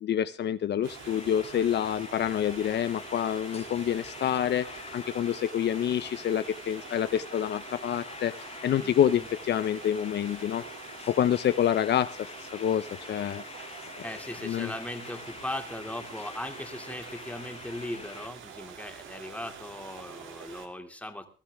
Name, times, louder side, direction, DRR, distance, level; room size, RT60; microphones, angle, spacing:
voice 1, 0.0-10.6 11.1-13.4 14.4-14.7, left 10 dB, 60° left, 12 dB, 0.8 m, -27 dB
sound 1, 0.8-18.3, left 5 dB, 30° left, 1.0 m, -46 dB
sound 2, 0.8-20.7, right 7 dB, 75° right, 2.8 m, -46 dB
voice 2, 8.8-9.3 14.0-21.3, left 1 dB, 5° left, 5 dB, 2.6 m, -39 dB
20.5 x 13.0 x 3.6 m, 0.37 s
cardioid pair, 90°, 20 cm